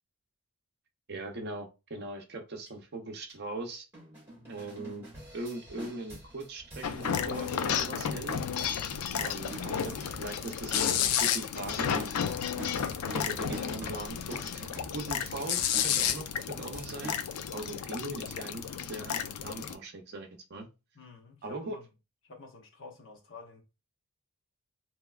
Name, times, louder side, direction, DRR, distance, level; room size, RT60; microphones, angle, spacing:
voice 1, 1.1-3.8 4.5-5.0 5.3-8.3 9.1-12.1 13.1-14.6 14.9-17.2 17.5-20.7 21.4-21.8, right 2 dB, 45° right, 0.6 m, -40 dB
sound 1, 2.7-2.8 3.3-3.4 3.9-17.4, right 1 dB, 10° right, 1.7 m, -47 dB
sound 2, 6.8-19.7, left 8 dB, 85° left, 0.4 m, -32 dB
voice 2, 20.9-21.8 22.3-23.6, left 3 dB, 55° left, 0.8 m, -49 dB
3.1 x 2.9 x 2.3 m
head